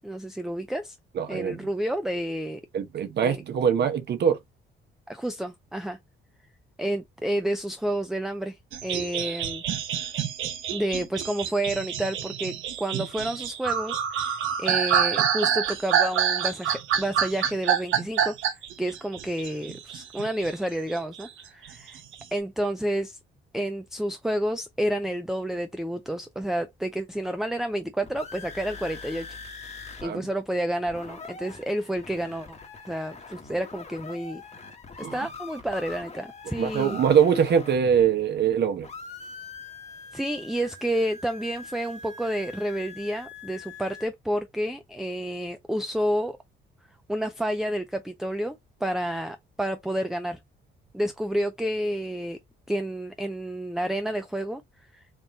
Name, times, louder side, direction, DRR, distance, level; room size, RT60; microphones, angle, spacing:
voice 1, 0.0-1.0 1.3-2.6 3.2-3.4 5.1-6.0 6.8-9.6 10.7-14.3 14.6-22.0 22.3-23.2 23.5-29.4 30.0-32.6 32.9-34.4 35.0-37.0 40.1-46.4 47.1-50.4 50.9-52.4 52.7-54.6 54.9-55.0, right 1 dB, ahead, 0.5 m, -30 dB
voice 2, 1.1-1.7 2.7-4.4 30.0-30.2 35.0-35.2 36.6-38.9, right 8 dB, 60° right, 1.0 m, -23 dB
sound 1, 8.7-20.5 20.9-22.2, right 8 dB, 85° right, 0.9 m, -27 dB
sound 2, 27.8-30.0 30.3-30.4 30.7-38.5 38.8-44.1, left 4 dB, 35° left, 1.2 m, -43 dB
3.6 x 2.5 x 4.0 m
cardioid pair, 90°, 20 cm